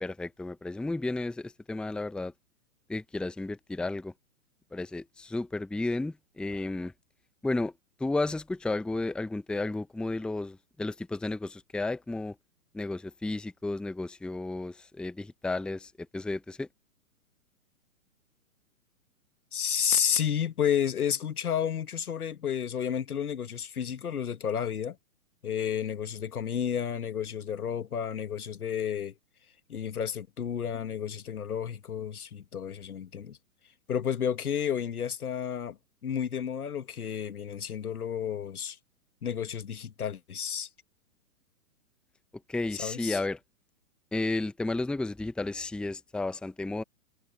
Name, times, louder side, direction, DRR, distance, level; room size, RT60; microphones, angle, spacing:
voice 1, 0.0-2.3 2.9-4.1 4.7-6.9 7.4-7.7 8.0-12.3 12.7-16.7 42.5-43.4 44.1-46.8, left 2 dB, ahead, 0.9 m, -33 dB
voice 2, 19.5-25.0 25.4-29.1 29.7-33.4 33.9-38.8 39.2-40.7 42.8-43.2, left 8 dB, 75° left, 2.0 m, -31 dB
hypercardioid pair, 125°, 44 cm